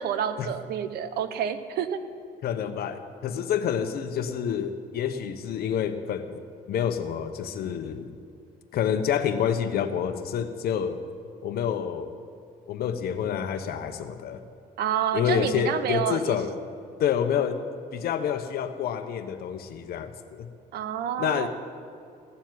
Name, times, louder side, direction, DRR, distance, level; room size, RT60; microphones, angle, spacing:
voice 1, 0.0-2.0 14.8-16.4 20.7-21.5, right 9 dB, 70° right, 10 dB, 1.1 m, -28 dB
voice 2, 2.4-6.4 6.7-8.1 8.7-11.0 11.4-12.1 12.7-14.4 15.1-16.5 17.0-17.6 17.9-20.5 21.2-21.5, left 8 dB, 65° left, 9 dB, 1.1 m, -28 dB
16.0 x 7.2 x 9.4 m, 2.4 s
cardioid pair, 110°, 17 cm